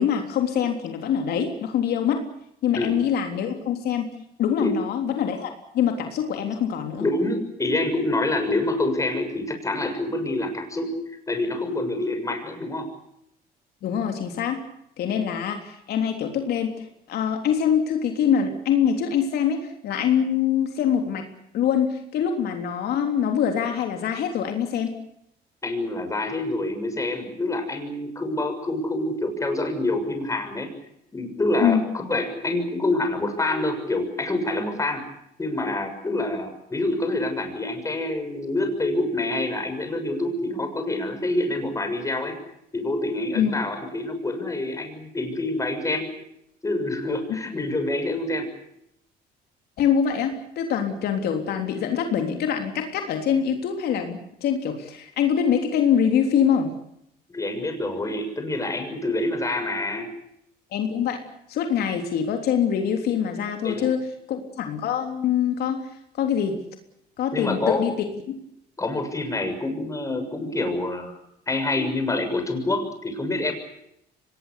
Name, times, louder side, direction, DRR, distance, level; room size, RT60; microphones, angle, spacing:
voice 1, 0.0-2.3 2.6-4.1 4.4-7.1 13.8-14.6 15.0-21.3 21.5-24.9 31.6-31.8 43.3-43.6 47.3-47.4 49.8-56.7 60.7-61.2 61.5-65.9 66.2-66.6 67.2-67.9 68.3-68.4, left 8 dB, 70° left, 4 dB, 3.5 m, -24 dB
voice 2, 7.0-11.0 11.3-12.9 25.6-30.7 31.1-35.0 35.4-42.4 42.7-46.1 46.6-48.5 57.3-60.1 63.6-63.9 67.3-67.9 68.8-71.1 71.5-73.5, left 2 dB, 20° left, 6 dB, 6.7 m, -26 dB
24.5 x 19.5 x 8.4 m, 0.77 s
cardioid pair, 110°, 17 cm